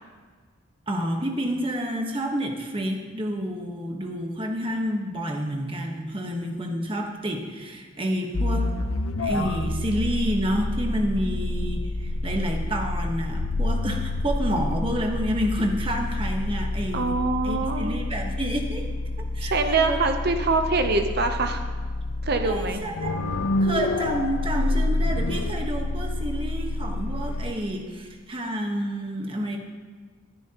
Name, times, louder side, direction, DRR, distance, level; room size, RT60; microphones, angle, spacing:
voice 1, 0.9-8.7 9.2-17.1 17.4-18.9 19.3-20.0 22.4-23.1 23.6-29.6, equal, 25° right, 2 dB, 1.3 m, -29 dB
sound 1, 8.3-27.5, left 2 dB, 80° left, 0.7 m, -28 dB
voice 2, 16.9-18.0 19.4-21.6 22.2-22.8, right 3 dB, 50° right, 6 dB, 0.7 m, -24 dB
18.5 x 10.0 x 3.0 m, 1.5 s
head